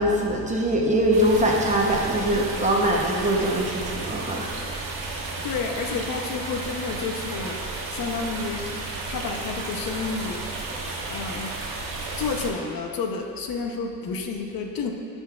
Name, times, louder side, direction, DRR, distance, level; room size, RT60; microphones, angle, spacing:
voice 1, 0.0-4.5 4.8-4.9, right 1 dB, 20° right, -2 dB, 0.8 m, -22 dB
sound 1, 1.1-12.5, right 3 dB, 65° right, 1.6 m, -33 dB
voice 2, 5.4-7.6 7.9-8.7 9.1-10.4 11.1-11.5 12.2-14.9, left 4 dB, 70° left, 3 dB, 0.8 m, -30 dB
16.0 x 5.4 x 2.4 m, 2.7 s
wide cardioid pair, 160°, 36 cm